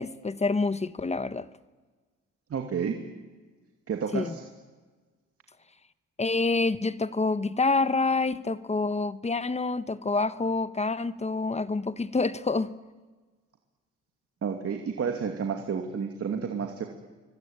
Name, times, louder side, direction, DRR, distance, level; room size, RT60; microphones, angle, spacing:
voice 1, 0.0-1.5 4.1-4.4 6.2-12.7, left 3 dB, 20° left, 1.0 m, -27 dB
voice 2, 2.5-3.0 3.9-4.4 14.4-16.8, right 6 dB, 50° right, 2.6 m, -30 dB
26.0 x 24.0 x 8.9 m
cardioid pair, 90°, 30 cm